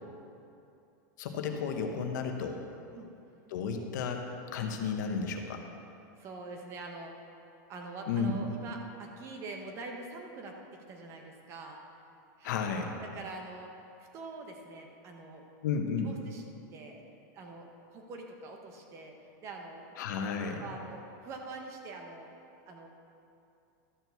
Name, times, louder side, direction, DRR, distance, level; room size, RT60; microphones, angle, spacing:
voice 1, 1.2-2.6 3.5-4.2 4.5-5.6 8.1-8.3 12.4-13.0 15.6-16.1 20.0-20.6, left 5 dB, 65° left, 4 dB, 1.1 m, -33 dB
voice 2, 6.2-7.3 7.7-11.8 12.4-12.6 13.0-13.7 14.0-15.5 16.0-16.4 16.7-17.0 17.3-19.9 20.6-22.4 22.7-22.9, right 3 dB, 25° right, 2 dB, 0.9 m, -45 dB
12.5 x 4.6 x 6.8 m, 2.6 s
supercardioid pair, 170°, 10 cm